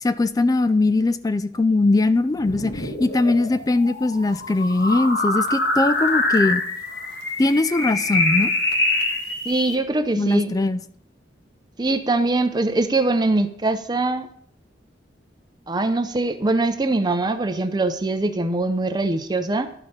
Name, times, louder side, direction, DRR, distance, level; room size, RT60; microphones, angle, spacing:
voice 1, 0.0-6.6 7.4-8.5 10.2-10.8, left 2 dB, 20° left, 13 dB, 0.3 m, -20 dB
sound 1, 2.3-9.8, left 2 dB, 65° left, 1.6 m, -25 dB
voice 2, 9.4-10.5 11.8-14.3 15.7-19.7, right 2 dB, 25° right, 9 dB, 0.6 m, -22 dB
12.0 x 5.2 x 5.6 m, 0.67 s
head